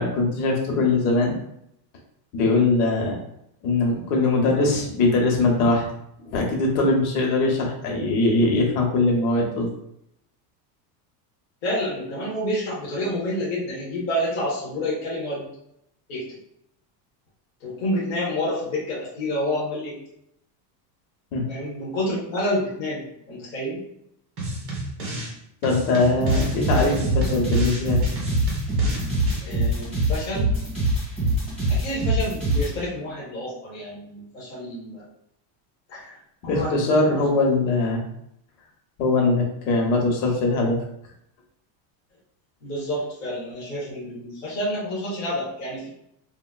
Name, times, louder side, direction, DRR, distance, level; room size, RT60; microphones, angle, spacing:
voice 1, 0.0-1.4 2.3-3.2 3.6-5.8 6.2-9.7 21.3-21.5 25.6-28.0 36.4-38.0 39.0-40.8, left 2 dB, 70° left, 0 dB, 1.0 m, -21 dB
voice 2, 11.6-15.5 16.1-16.2 17.6-19.9 21.5-23.8 29.4-30.5 31.7-35.0 35.9-36.1 36.4-36.7 37.0-37.2 42.6-45.9, left 1 dB, 25° left, -6 dB, 0.3 m, -29 dB
sound 1, 24.4-25.3 25.6-29.4, right 1 dB, 30° right, 0.5 m, -32 dB
sound 2, 26.2-32.7, right 1 dB, ahead, 1.0 m, -23 dB
3.6 x 2.2 x 2.2 m, 0.76 s
cardioid pair, 180°, 49 cm